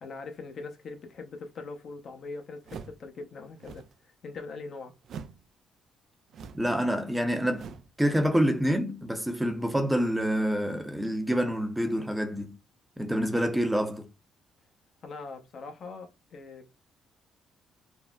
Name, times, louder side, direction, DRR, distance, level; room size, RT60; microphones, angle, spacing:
voice 1, 0.0-4.9 15.0-16.7, left 4 dB, 60° left, 0.8 m, -42 dB
sound 1, 2.6-3.1 3.5-4.0 5.0-5.5 6.3-6.8 7.5-8.0, right 6 dB, 65° right, 0.3 m, -43 dB
voice 2, 6.5-7.7 8.0-12.5 13.0-14.1, equal, 5° right, 0.6 m, -27 dB
3.6 x 2.0 x 2.3 m
cardioid pair, 90°, 0 cm